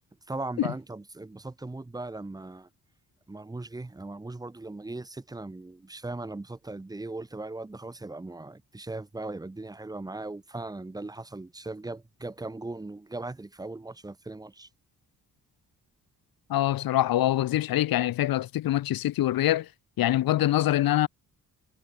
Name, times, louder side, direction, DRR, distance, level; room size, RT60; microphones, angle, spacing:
voice 1, 0.3-2.7 3.3-14.7, right 2 dB, 10° right, 0.8 m, -38 dB
voice 2, 16.5-19.7 20.0-21.1, left 14 dB, 85° left, 0.7 m, -24 dB
wide cardioid pair, 160°, 35 cm